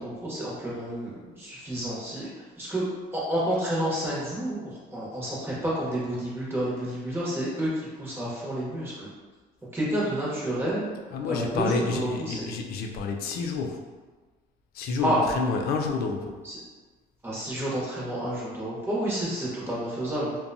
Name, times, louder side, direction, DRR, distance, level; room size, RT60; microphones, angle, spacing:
voice 1, 0.0-2.3 2.6-7.7 8.0-9.1 9.7-10.9 11.2-12.5 15.0-15.2 16.4-16.6 17.2-20.4, right 1 dB, 15° right, -7 dB, 0.9 m, -30 dB
voice 2, 11.1-13.8 14.7-16.4, left 4 dB, 65° left, 3 dB, 0.4 m, -29 dB
2.6 x 2.2 x 2.6 m, 1.3 s
cardioid pair, 110°, 17 cm